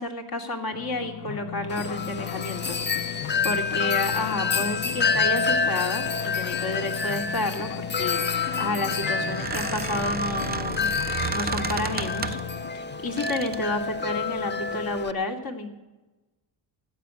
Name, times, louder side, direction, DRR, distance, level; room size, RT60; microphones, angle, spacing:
voice 1, 0.0-3.1 3.4-10.9 11.3-12.4 12.7-15.7, left 2 dB, 45° left, 3 dB, 2.6 m, -30 dB
sound 1, 0.7-14.8, left 13 dB, 85° left, 0.6 m, -37 dB
Wind chime, 1.7-15.1, left 5 dB, 20° left, 0.7 m, -28 dB
Squeak, 8.2-12.6 13.2-13.7, right 6 dB, 20° right, 0.5 m, -34 dB
14.5 x 8.6 x 9.3 m, 1.1 s
cardioid pair, 90°, 50 cm